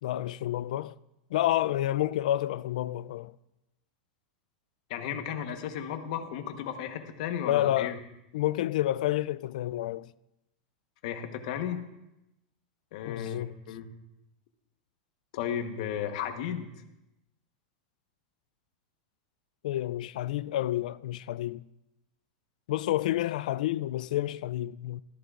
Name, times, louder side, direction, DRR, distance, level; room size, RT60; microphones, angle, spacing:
voice 1, 0.0-0.9 1.3-3.3 7.4-8.0 8.3-10.1 13.1-13.5 19.6-21.6 22.7-25.0, left 14 dB, 70° left, 0.3 m, -29 dB
voice 2, 4.9-8.0 11.0-11.8 12.9-13.9 15.3-16.7, left 9 dB, 55° left, 1.2 m, -34 dB
13.5 x 13.0 x 2.5 m
supercardioid pair, 160°, 4 cm